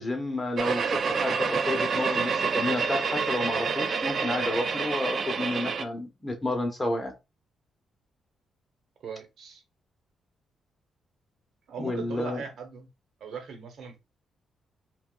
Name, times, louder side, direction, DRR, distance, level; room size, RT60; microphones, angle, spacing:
voice 1, 0.0-7.1 11.8-12.4, left 2 dB, 15° left, 0.9 m, -31 dB
sound 1, 0.6-5.8, right 5 dB, 50° right, 0.4 m, -28 dB
voice 2, 9.0-9.6 11.7-12.9 13.2-14.0, right 6 dB, 70° right, 1.0 m, -39 dB
4.2 x 2.3 x 2.2 m
cardioid pair, 120°, 0 cm